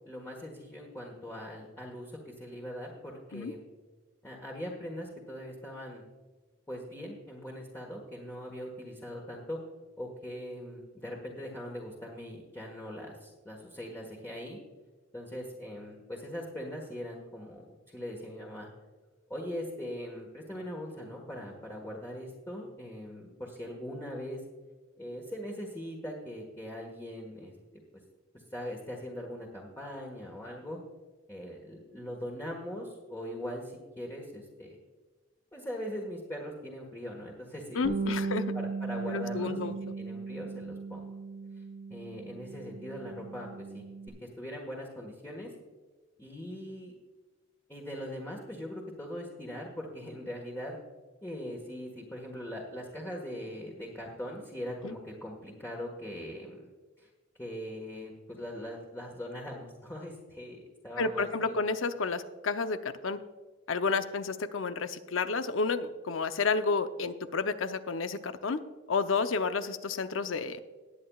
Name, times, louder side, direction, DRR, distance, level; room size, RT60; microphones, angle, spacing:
voice 1, 0.0-3.6 4.2-6.0 6.7-9.6 10.0-14.6 15.1-18.7 19.3-24.4 25.0-27.5 28.3-30.8 31.3-34.8 35.5-41.1 41.5-41.6 41.9-43.8 44.2-45.5 46.2-46.9 47.7-50.8 51.2-56.7 57.0-57.1 57.4-61.5, equal, 10° left, -1 dB, 1.4 m, -41 dB
voice 2, 37.7-38.5 39.1-39.8 54.8-54.9 61.0-63.2 63.7-68.6 68.9-70.6, left 4 dB, 90° left, 10 dB, 0.7 m, -31 dB
Bass guitar, 37.8-44.1, right 4 dB, 75° right, 1.6 m, -37 dB
20.0 x 8.6 x 2.4 m, 1.3 s
head